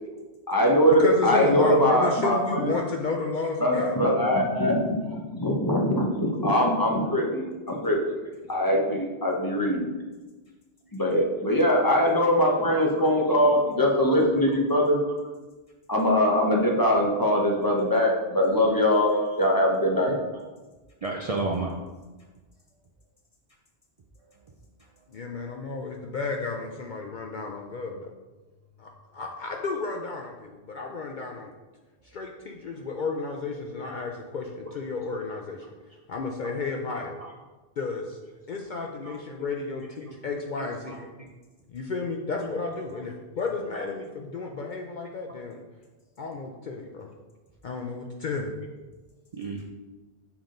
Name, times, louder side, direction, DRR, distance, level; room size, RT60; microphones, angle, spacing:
voice 1, 0.5-2.6 3.6-8.1 8.5-9.9 10.9-15.0 15.9-19.1 19.4-20.1, equal, 20° left, -1 dB, 0.8 m, -22 dB
voice 2, 1.0-4.0 25.1-28.1 28.8-31.5 32.0-35.7 36.1-37.2 37.8-38.2 38.5-41.0 41.7-45.6 46.2-47.1 47.6-48.5, left 4 dB, 55° left, 1 dB, 0.6 m, -32 dB
voice 3, 12.8-13.5 14.5-14.6 15.1-15.2 17.6-17.7 18.9-19.4 21.0-21.7 33.8-33.9 37.2-37.3 39.0-39.2 40.0-41.3 42.4-42.5 49.3-49.6, right 3 dB, 45° right, -1 dB, 0.5 m, -35 dB
7.2 x 3.6 x 3.8 m, 1.2 s
omnidirectional pair, 1.1 m